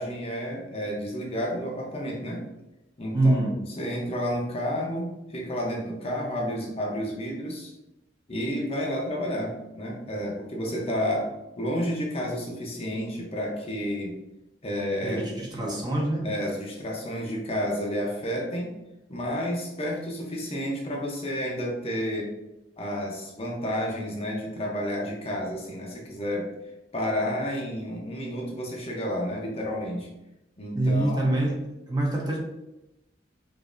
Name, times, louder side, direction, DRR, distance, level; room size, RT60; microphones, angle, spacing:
voice 1, 0.0-2.4 3.0-3.4 3.8-7.7 8.3-11.3 11.6-14.1 14.6-15.2 15.6-15.9 16.2-18.7 19.1-22.3 22.8-26.5 26.9-30.1 30.6-31.4, equal, 35° left, -2 dB, 0.8 m, -30 dB
voice 2, 3.1-3.6 15.0-16.3 30.7-31.6 31.9-32.4, right 1 dB, 25° right, -2 dB, 0.9 m, -25 dB
5.1 x 2.7 x 2.6 m, 0.93 s
head